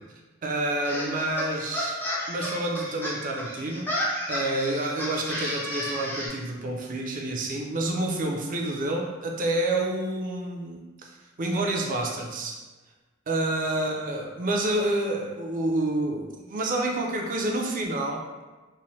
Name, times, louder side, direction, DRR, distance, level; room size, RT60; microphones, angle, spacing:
voice 1, 0.4-11.1 11.4-12.6 13.3-18.3, right 1 dB, 45° right, 1 dB, 0.4 m, -28 dB
sound 1, 0.8-6.3, equal, 10° left, 0.5 m, -32 dB
3.0 x 2.1 x 2.7 m, 1.2 s
head